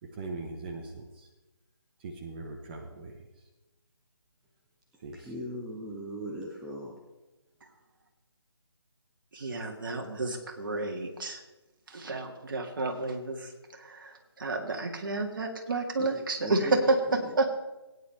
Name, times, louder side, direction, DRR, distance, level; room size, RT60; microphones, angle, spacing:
voice 1, 0.0-1.3 2.0-3.5 5.0-5.3, right 3 dB, 20° right, 2 dB, 0.8 m, -41 dB
voice 2, 5.1-7.0 16.0-16.8 17.1-17.4, right 1 dB, ahead, -3 dB, 0.4 m, -39 dB
voice 3, 9.3-11.4 11.9-17.0 17.3-17.5, right 2 dB, 50° right, 3 dB, 2.0 m, -31 dB
18.0 x 9.6 x 3.4 m, 1.1 s
figure-of-eight pair, 155°, 14 cm